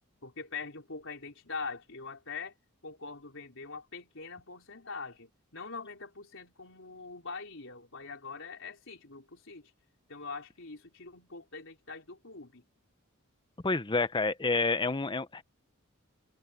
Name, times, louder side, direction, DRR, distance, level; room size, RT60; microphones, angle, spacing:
voice 1, 0.2-2.6 2.8-9.7 10.1-12.6, left 4 dB, 65° left, 4.4 m, -43 dB
voice 2, 13.6-15.4, left 3 dB, 25° left, 0.9 m, -29 dB
head